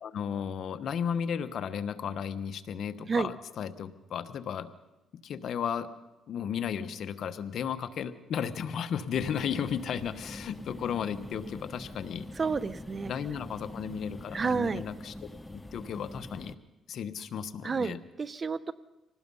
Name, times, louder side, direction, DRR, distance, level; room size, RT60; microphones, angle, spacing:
voice 1, 0.0-4.7 5.2-5.9 6.3-12.3 13.1-15.1 15.5-16.5 16.9-18.0, left 8 dB, 65° left, 11 dB, 1.2 m, -34 dB
sound 1, 9.1-16.6, left 1 dB, 10° left, 0.8 m, -44 dB
voice 2, 12.4-13.1 14.3-14.8 17.6-18.7, right 4 dB, 35° right, 16 dB, 0.9 m, -30 dB
24.5 x 19.0 x 5.6 m, 1.0 s
cardioid pair, 90°, 0 cm